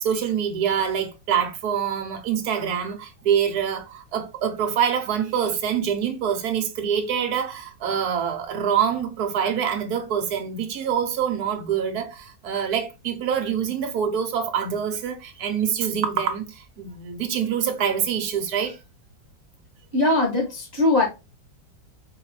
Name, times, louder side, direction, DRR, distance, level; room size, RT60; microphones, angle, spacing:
voice 1, 0.0-18.8, right 8 dB, 60° right, 1.2 m, -25 dB
voice 2, 19.9-21.0, left 2 dB, 20° right, 0.7 m, -20 dB
4.8 x 3.1 x 3.1 m
omnidirectional pair, 2.1 m